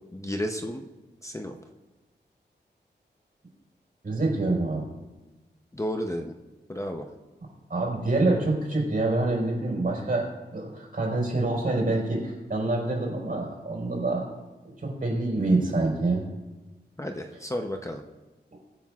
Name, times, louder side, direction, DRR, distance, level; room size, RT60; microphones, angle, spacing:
voice 1, 0.1-0.9 1.2-1.5 5.7-6.3 6.7-7.1 17.0-18.0, equal, 15° left, 4 dB, 0.7 m, -32 dB
voice 2, 4.0-4.8 7.7-14.2 14.6-16.2 18.5-18.6, right 2 dB, 50° right, -1 dB, 4.4 m, -26 dB
22.0 x 8.9 x 2.4 m, 1.1 s
wide cardioid pair, 100°, 18 cm